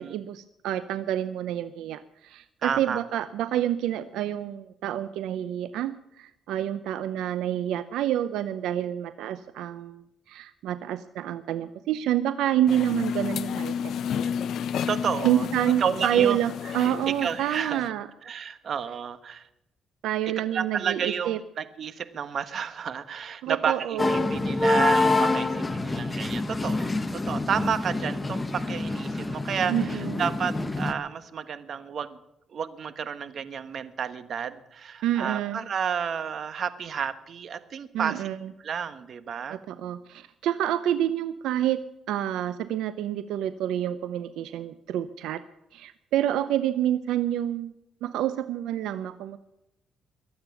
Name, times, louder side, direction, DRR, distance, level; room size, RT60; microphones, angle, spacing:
voice 1, 0.0-13.7 14.1-14.3 14.7-14.8 15.2-18.1 20.0-21.4 23.4-24.4 29.7-30.2 35.0-35.6 37.9-38.5 39.5-45.4 45.7-47.7 48.0-49.4, right 11 dB, 90° right, 13 dB, 0.6 m, -28 dB
voice 2, 2.6-3.2 14.9-15.5 15.8-16.4 16.8-17.9 18.2-19.5 20.5-26.9 27.3-32.2 32.5-38.3 38.6-39.6, right 7 dB, 55° right, 12 dB, 1.3 m, -31 dB
sound 1, 12.7-17.9, left 7 dB, 70° left, 0.7 m, -31 dB
sound 2, 24.0-30.9, left 2 dB, 20° left, 1.3 m, -26 dB
23.0 x 8.8 x 7.0 m, 0.88 s
cardioid pair, 90°, 0 cm